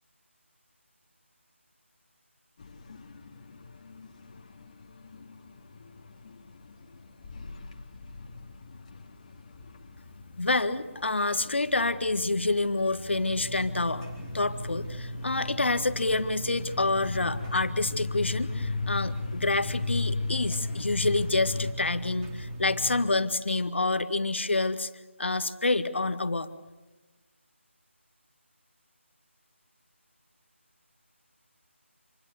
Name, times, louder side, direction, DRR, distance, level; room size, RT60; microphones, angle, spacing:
sound 1, 2.6-21.7, left 4 dB, 30° left, 2.3 m, -38 dB
voice 1, 10.4-14.1 14.3-24.9 25.2-26.5, left 2 dB, 60° left, 11 dB, 1.8 m, -27 dB
sound 2, 13.3-23.0, equal, 15° right, 4.3 m, -38 dB
28.0 x 21.5 x 7.0 m, 1.2 s
figure-of-eight pair, 160°, 7 cm